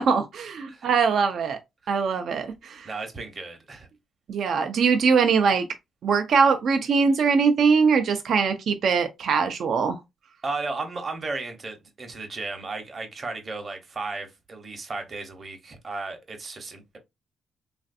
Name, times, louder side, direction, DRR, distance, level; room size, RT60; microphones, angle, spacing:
voice 1, 0.0-1.6 1.9-2.9 4.3-5.6 6.0-10.0, right 5 dB, 65° right, 0.5 m, -22 dB
voice 2, 2.8-3.9 10.4-17.0, right 3 dB, 35° right, 0.8 m, -35 dB
3.2 x 2.5 x 2.5 m
cardioid pair, 110°, 0 cm